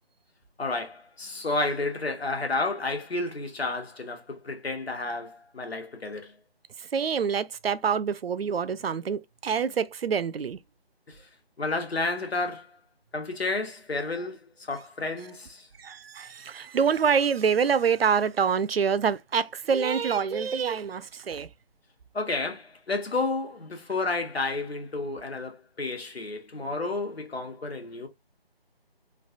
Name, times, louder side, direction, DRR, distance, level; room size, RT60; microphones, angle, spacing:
voice 1, 0.6-6.3 11.1-11.2 11.6-12.7 13.1-15.7 22.1-28.1, left 3 dB, 75° left, 1.3 m, -31 dB
voice 2, 6.8-10.6 15.8-21.5, right 6 dB, 70° right, 0.5 m, -26 dB
3.2 x 2.3 x 2.7 m
figure-of-eight pair, 165°, 31 cm